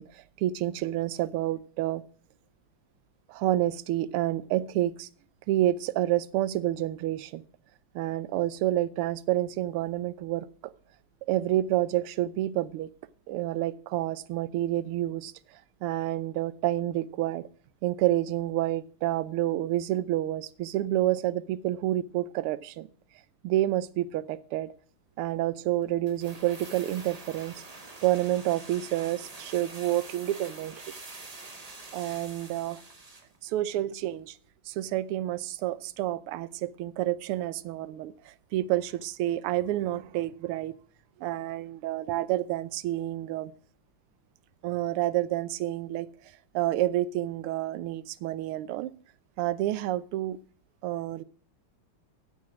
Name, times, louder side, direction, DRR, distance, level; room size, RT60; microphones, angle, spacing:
voice 1, 0.0-2.0 3.3-5.1 5.5-7.4 7.9-10.5 11.3-12.9 13.3-15.3 15.8-17.4 17.8-22.9 23.4-24.7 25.2-27.5 28.0-31.0 31.9-32.8 33.4-34.4 34.7-40.7 41.2-43.5 44.6-46.1 46.5-48.9 49.4-50.4 50.8-51.2, right 14 dB, 85° right, 18 dB, 1.5 m, -29 dB
sound 1, 26.1-33.4 33.6-33.7, right 3 dB, 25° right, 1.0 m, -46 dB
8.7 x 8.2 x 5.9 m, 0.44 s
omnidirectional pair, 2.4 m